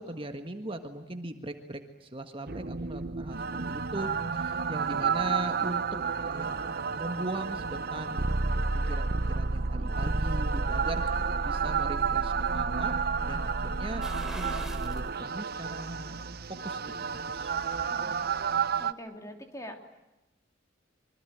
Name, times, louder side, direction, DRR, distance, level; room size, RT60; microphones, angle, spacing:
voice 1, 0.0-3.4 3.7-5.8 6.2-12.9 13.2-14.0 14.4-16.8 17.3-17.6, right 1 dB, 30° right, 6 dB, 1.7 m, -39 dB
sound 1, 2.5-18.9, right 5 dB, 55° right, 0.9 m, -30 dB
sound 2, 14.0-15.1 15.5-15.6 17.1-17.9 18.2-18.3, right 1 dB, 5° right, 3.4 m, -43 dB
voice 2, 18.8-20.0, equal, 15° left, 4 dB, 3.3 m, -44 dB
26.0 x 24.5 x 9.3 m, 0.99 s
head